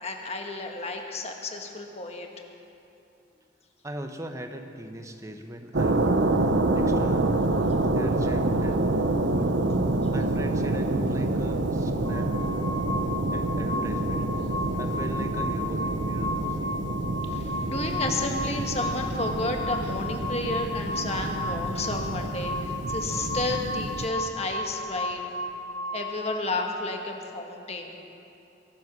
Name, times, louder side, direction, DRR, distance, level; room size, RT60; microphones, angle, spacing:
voice 1, 0.0-2.3 14.7-14.8 17.3-25.4 25.9-27.9, left 2 dB, 35° left, 3 dB, 1.4 m, -32 dB
voice 2, 3.8-6.5 6.7-7.3 7.9-9.6 10.1-12.3 13.3-14.3 14.8-16.8, right 1 dB, 15° right, 5 dB, 0.9 m, -39 dB
sound 1, 5.7-24.1, right 2 dB, 80° right, 0.9 m, -27 dB
sound 2, 12.0-26.5, left 1 dB, 20° left, 0.7 m, -34 dB
23.0 x 8.1 x 6.2 m, 2.9 s
head